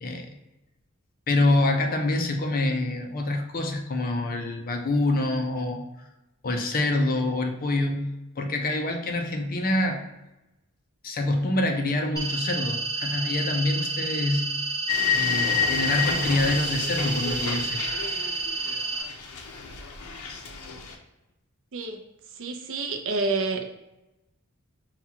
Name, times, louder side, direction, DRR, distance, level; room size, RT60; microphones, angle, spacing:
voice 1, 0.0-0.3 1.3-5.8 6.4-8.1 8.4-10.0 11.0-14.5 15.1-17.8 18.7-18.8, left 2 dB, 40° left, 4 dB, 0.5 m, -26 dB
sound 1, 12.2-19.0, right 3 dB, 15° left, 1.1 m, -30 dB
sound 2, 14.9-18.8 19.1-20.9, left 7 dB, 90° left, 0.6 m, -29 dB
voice 2, 22.4-23.7, right 3 dB, 65° right, 4 dB, 0.5 m, -28 dB
5.6 x 2.3 x 2.8 m, 0.98 s
head